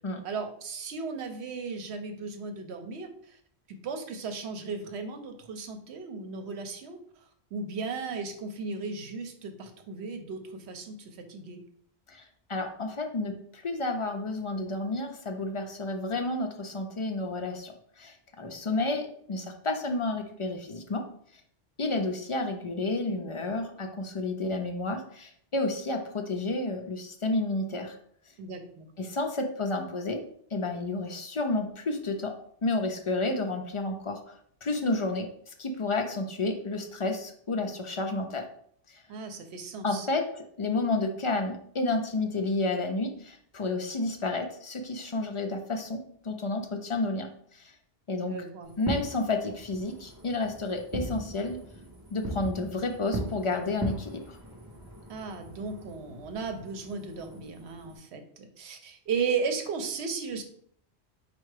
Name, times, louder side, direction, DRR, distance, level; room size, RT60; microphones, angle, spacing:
voice 1, 0.2-3.4 3.7-11.6 28.4-28.9 39.1-40.1 48.3-48.7 55.1-60.4, right 5 dB, 80° right, 7 dB, 0.9 m, -36 dB
voice 2, 12.5-21.0 21.8-28.0 29.0-30.2 30.5-32.3 32.6-38.5 38.9-39.0 39.8-47.7 48.1-48.4 48.8-51.6 52.1-54.4, left 2 dB, 50° left, 4 dB, 0.3 m, -31 dB
Fireworks, 48.7-58.0, equal, 25° right, 0.7 m, -39 dB
4.4 x 2.3 x 4.8 m, 0.62 s
omnidirectional pair, 1.1 m